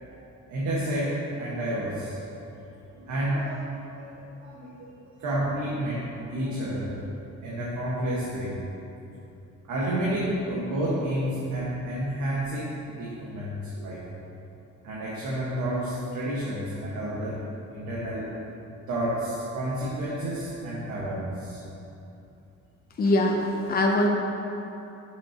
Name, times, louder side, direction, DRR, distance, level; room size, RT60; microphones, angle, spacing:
voice 1, 0.5-2.2 2.9-4.7 5.0-8.5 9.6-14.0 14.8-17.4 17.7-18.3 18.9-21.6 23.0-23.1, right 1 dB, 80° right, -7 dB, 1.7 m, -30 dB
voice 2, 23.0-24.1, left 1 dB, 30° left, 0 dB, 0.8 m, -22 dB
13.0 x 6.8 x 3.0 m, 2.9 s
cardioid pair, 155°, 30 cm